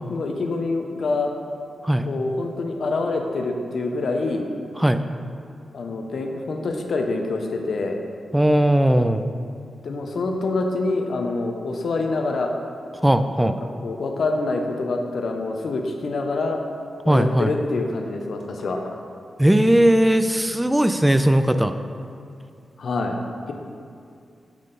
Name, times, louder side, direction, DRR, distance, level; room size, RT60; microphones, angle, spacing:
voice 1, 0.1-1.3 2.1-4.4 5.7-8.0 9.8-12.5 13.4-13.5 13.8-16.6 17.0-18.8 22.8-23.2, left 3 dB, 70° left, 3 dB, 0.6 m, -26 dB
voice 2, 8.3-9.2 13.0-13.6 17.1-17.5 19.4-21.7, right 1 dB, 10° right, 9 dB, 0.4 m, -18 dB
8.9 x 3.8 x 3.8 m, 2.5 s
supercardioid pair, 45°, 0 cm